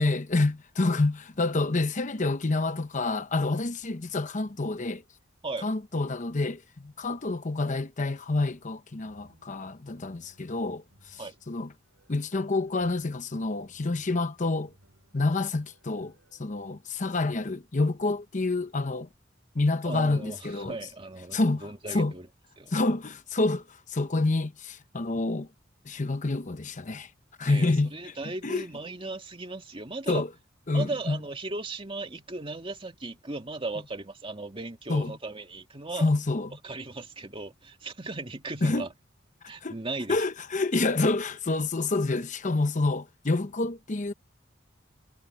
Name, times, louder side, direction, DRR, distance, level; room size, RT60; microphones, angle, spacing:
voice 1, 0.0-5.0 5.6-11.7 12.1-14.7 15.1-16.1 16.4-19.1 19.5-20.7 21.3-22.1 22.7-25.5 25.8-27.1 27.4-28.6 30.1-30.3 30.7-31.2 34.9-35.1 36.0-36.6 38.6-38.9 39.6-39.8 40.1-44.1, left 2 dB, 40° left, 0.9 m, -28 dB
sound 1, 9.0-16.4, right 1 dB, 85° right, 7.9 m, -64 dB
voice 2, 19.8-22.3 22.6-22.7 27.4-30.2 30.7-36.1 36.6-38.9 39.5-40.2, right 2 dB, 30° right, 2.2 m, -37 dB
head